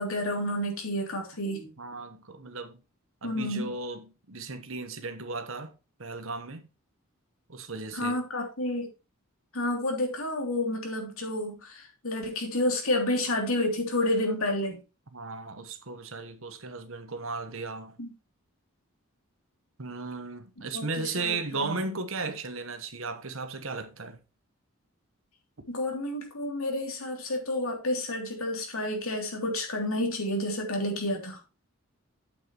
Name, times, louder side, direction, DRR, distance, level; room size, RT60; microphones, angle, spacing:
voice 1, 0.0-1.7 3.2-3.7 7.9-8.9 9.5-14.8 18.0-18.1 20.7-21.7 25.7-31.4, left 1 dB, 75° left, 3.1 m, -30 dB
voice 2, 1.8-2.8 3.2-5.7 6.0-6.6 7.5-8.2 15.1-17.9 19.8-24.2, right 3 dB, 65° right, 1.2 m, -36 dB
8.5 x 8.4 x 3.1 m
head